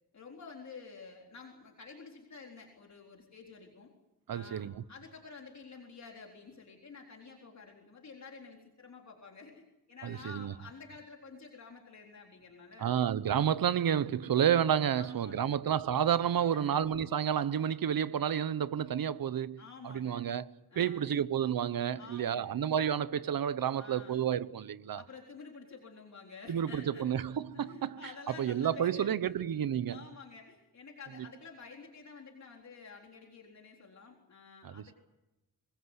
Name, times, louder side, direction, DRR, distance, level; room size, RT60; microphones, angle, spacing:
voice 1, 0.1-3.9 4.3-13.0 15.0-15.6 16.5-16.8 19.6-20.3 20.7-21.1 22.0-22.5 23.8-24.3 24.9-27.2 27.6-29.4 29.9-34.9, left 4 dB, 45° left, 4.0 m, -50 dB
voice 2, 4.3-4.8 10.0-10.5 12.8-20.4 20.8-25.0 26.5-28.0 28.3-30.0 34.6-34.9, right 9 dB, 65° right, 1.0 m, -30 dB
26.0 x 21.0 x 8.1 m
wide cardioid pair, 165°, 37 cm